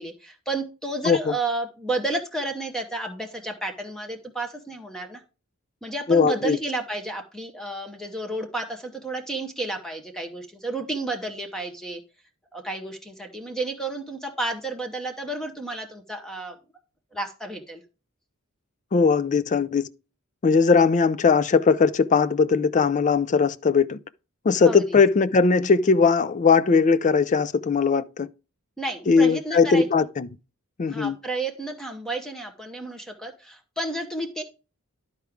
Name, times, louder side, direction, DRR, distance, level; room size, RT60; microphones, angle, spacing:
voice 1, 0.0-5.2 5.8-12.0 12.5-16.6 17.1-17.8 24.6-25.0 28.8-29.9 30.9-34.4, right 2 dB, 5° left, 0.9 m, -31 dB
voice 2, 6.1-6.6 18.9-19.9 20.4-24.0 24.4-28.3 29.1-30.3 30.8-31.2, left 5 dB, 35° left, 0.4 m, -19 dB
11.5 x 4.8 x 3.5 m
head